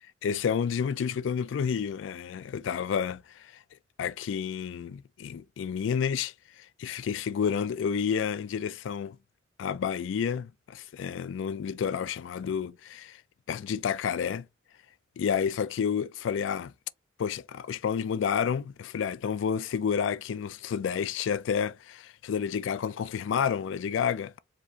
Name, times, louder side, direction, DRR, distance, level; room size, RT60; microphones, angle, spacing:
voice 1, 0.2-3.5 4.0-9.2 9.6-13.2 13.5-14.5 15.2-16.7 17.2-24.4, left 7 dB, 70° left, 0.3 m, -30 dB
4.5 x 2.4 x 2.8 m
head